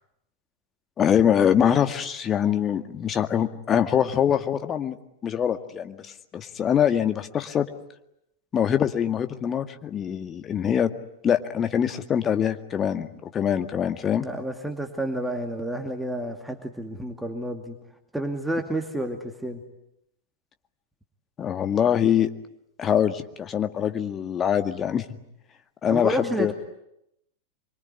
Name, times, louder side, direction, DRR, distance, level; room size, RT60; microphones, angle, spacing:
voice 1, 1.0-5.0 5.2-7.7 8.5-10.9 11.2-14.2 21.4-22.3 22.8-25.0 25.8-26.5, left 9 dB, 25° left, 8 dB, 1.9 m, -24 dB
voice 2, 14.2-17.8 18.1-19.6 25.9-26.5, right 1 dB, 5° right, 4 dB, 2.4 m, -30 dB
26.0 x 24.0 x 9.7 m, 0.80 s
figure-of-eight pair, 90°, 0 cm